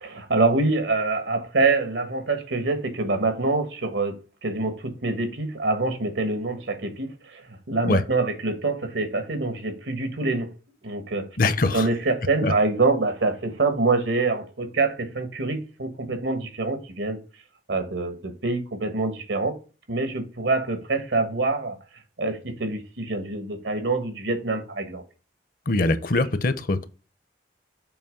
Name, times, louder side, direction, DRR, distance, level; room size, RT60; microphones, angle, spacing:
voice 1, 0.0-10.5 10.8-11.3 11.7-17.2 17.7-19.6 19.9-21.8 22.2-25.0, right 3 dB, 90° right, 1.4 m, -25 dB
voice 2, 11.4-11.9 12.4-12.5 25.7-26.9, left 2 dB, 50° left, 0.7 m, -22 dB
7.0 x 3.0 x 5.1 m
head